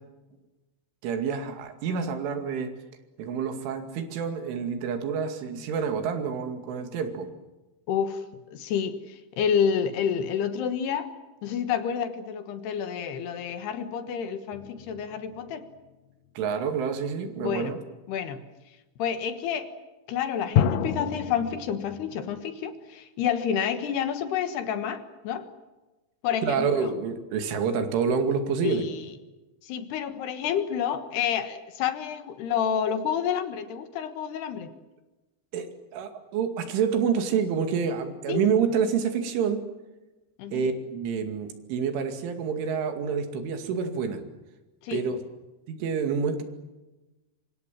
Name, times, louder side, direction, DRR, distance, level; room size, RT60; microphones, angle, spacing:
voice 1, 1.0-2.7 3.2-7.3 16.4-17.8 26.4-28.8 35.5-39.6 40.5-44.2 44.9-45.2 45.7-46.4, right 6 dB, 85° right, 6 dB, 4.8 m, -28 dB
voice 2, 7.9-8.2 8.5-11.1 11.4-15.7 17.4-17.8 18.1-18.4 19.0-19.7 20.1-25.5 26.2-26.9 28.6-29.1 29.6-34.7 38.3-38.4 40.4-40.6 44.8-45.0, left 8 dB, 65° left, 9 dB, 3.2 m, -29 dB
sound 1, 14.5-15.9 20.6-22.4, left 9 dB, 85° left, 1.9 m, -29 dB
26.5 x 25.5 x 7.6 m, 1.1 s
omnidirectional pair, 5.4 m